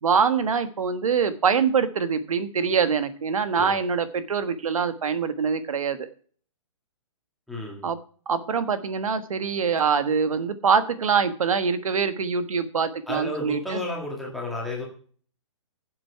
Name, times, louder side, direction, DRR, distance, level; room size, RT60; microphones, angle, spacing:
voice 1, 0.0-6.1 7.8-8.0 8.3-13.8, right 6 dB, 90° right, 11 dB, 1.4 m, -24 dB
voice 2, 7.5-7.9 13.1-14.9, left 1 dB, ahead, -3 dB, 1.8 m, -32 dB
12.0 x 7.8 x 4.6 m, 0.43 s
hypercardioid pair, 175°, 17 cm